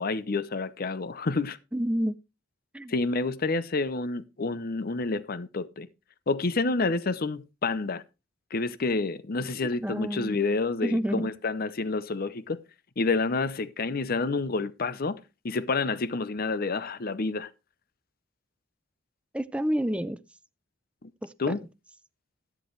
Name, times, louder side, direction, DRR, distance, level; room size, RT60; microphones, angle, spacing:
voice 1, 0.0-1.6 2.9-5.9 6.3-8.0 8.5-12.6 13.0-15.2 15.4-17.5 21.4-21.6, left 3 dB, 50° left, 0.7 m, -29 dB
voice 2, 1.7-2.2 2.7-2.9 9.8-10.4 10.8-11.3 19.3-20.2 21.2-21.5, equal, 5° right, 0.5 m, -29 dB
12.5 x 10.5 x 3.2 m
head